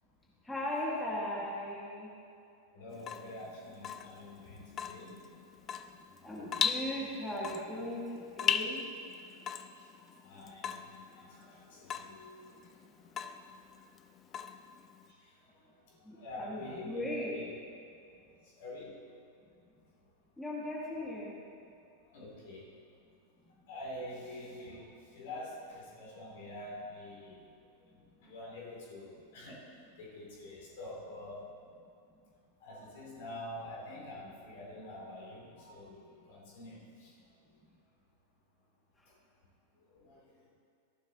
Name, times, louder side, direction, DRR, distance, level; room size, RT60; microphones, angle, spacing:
voice 1, 0.5-2.1 6.2-8.8 16.1-17.3 20.4-21.3, left 1 dB, 5° left, -6 dB, 2.0 m, -38 dB
voice 2, 2.7-5.2 9.8-12.8 13.1-13.4 15.1-17.5 18.4-19.2 22.0-22.7 23.7-27.4 27.8-31.5 32.6-37.2 39.1-39.2 39.9-40.5, left 1 dB, 55° left, -4 dB, 3.2 m, -47 dB
Water tap faucet / Drip, 2.9-15.1, left 8 dB, 30° left, 0.5 m, -38 dB
15.0 x 11.5 x 3.0 m, 2.5 s
figure-of-eight pair, 90°, 0 cm